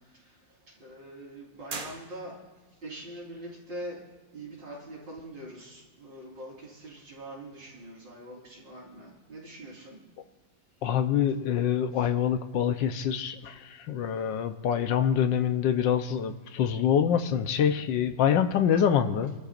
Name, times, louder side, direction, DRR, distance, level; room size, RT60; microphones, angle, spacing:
voice 1, 0.7-2.4 2.8-4.0 4.3-10.0 12.0-12.1, right 1 dB, 75° right, -4 dB, 4.8 m, -43 dB
sound 1, 1.7-2.7, right 4 dB, 50° right, 1.8 m, -40 dB
voice 2, 10.8-19.3, left 8 dB, 75° left, 9 dB, 1.5 m, -25 dB
28.5 x 13.0 x 2.5 m, 1.3 s
omnidirectional pair, 2.0 m